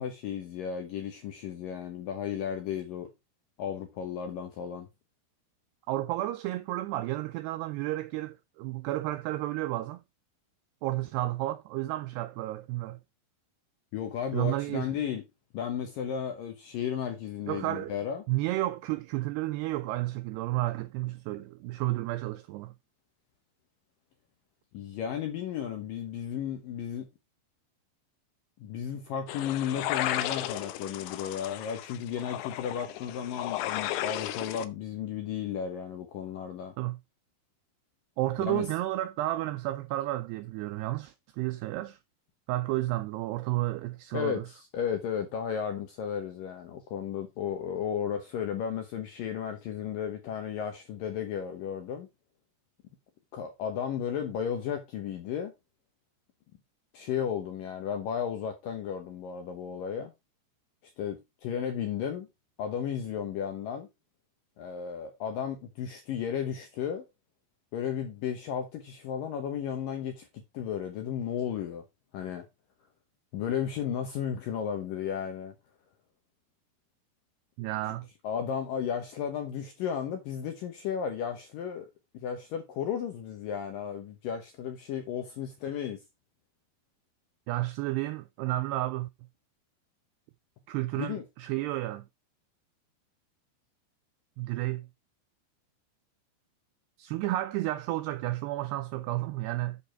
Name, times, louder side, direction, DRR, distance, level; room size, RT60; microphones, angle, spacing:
voice 1, 0.0-3.1 3.6-4.9 13.9-15.2 15.5-18.2 24.7-27.1 28.6-36.7 38.4-38.7 44.1-52.1 53.3-55.5 56.9-60.1 61.0-62.3 62.6-63.9 64.6-67.1 67.7-71.8 72.1-72.5 73.3-75.5 78.2-81.9 82.1-86.0 91.0-91.2, left 8 dB, 70° left, 2.1 m, -34 dB
voice 2, 5.9-10.0 10.8-13.0 14.3-15.0 17.5-18.0 18.3-22.7 36.8-37.0 38.2-42.0 42.5-44.4 77.6-78.1 87.5-89.1 90.7-92.1 94.4-94.9 97.0-99.8, right 17 dB, 85° right, 2.3 m, -32 dB
sound 1, 29.3-34.7, left 14 dB, 85° left, 3.2 m, -34 dB
7.8 x 6.9 x 4.4 m
omnidirectional pair, 5.4 m